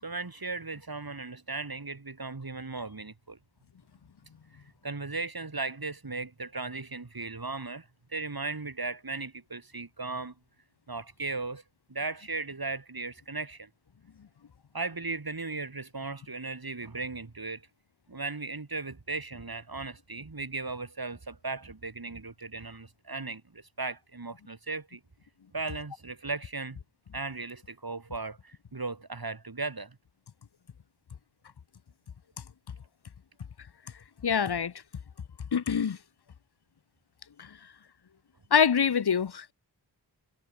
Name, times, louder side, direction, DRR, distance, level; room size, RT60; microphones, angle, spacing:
voice 1, 0.0-3.4 4.8-10.3 10.9-11.6 11.9-13.7 14.7-17.7 18.1-25.0 25.5-26.8 27.1-30.0, right 3 dB, 55° right, 6.7 m, -37 dB
voice 2, 34.2-34.7 35.5-36.0 37.4-37.6 38.5-39.5, left 7 dB, 60° left, 1.0 m, -25 dB
wide cardioid pair, 50°, 44 cm